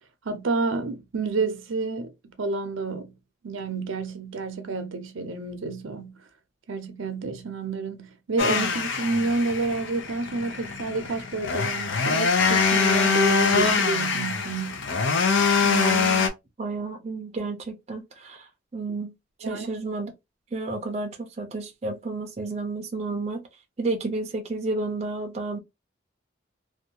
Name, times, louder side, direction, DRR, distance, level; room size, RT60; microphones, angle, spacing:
voice 1, 0.2-3.1 3.4-6.2 6.7-14.9 19.4-19.7, right 3 dB, 80° right, 0.5 m, -29 dB
sound 1, 8.4-16.3, left 5 dB, 65° left, 0.5 m, -24 dB
voice 2, 15.6-16.3 16.6-19.1 19.4-20.1 20.5-23.4 23.8-25.6, right 3 dB, 30° right, 0.5 m, -31 dB
2.6 x 2.2 x 2.7 m
head